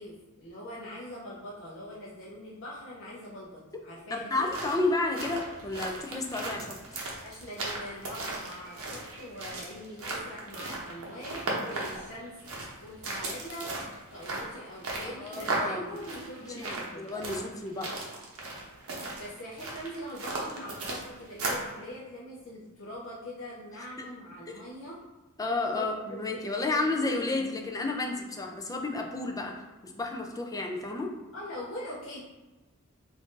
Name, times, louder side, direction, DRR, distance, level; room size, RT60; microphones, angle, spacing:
voice 1, 0.0-4.5 7.2-12.3 12.8-17.1 19.1-25.0 25.8-27.3 31.3-32.2, equal, 60° left, -7 dB, 0.6 m, -43 dB
voice 2, 4.1-6.7 15.2-16.0 16.4-16.7 17.0-18.0 24.0-24.1 24.5-24.6 25.4-29.5 29.8-31.1, left 2 dB, 15° left, 2 dB, 0.3 m, -31 dB
sound 1, 4.3-21.7, right 2 dB, 65° right, 0.7 m, -37 dB
2.6 x 2.5 x 3.6 m, 1.1 s
head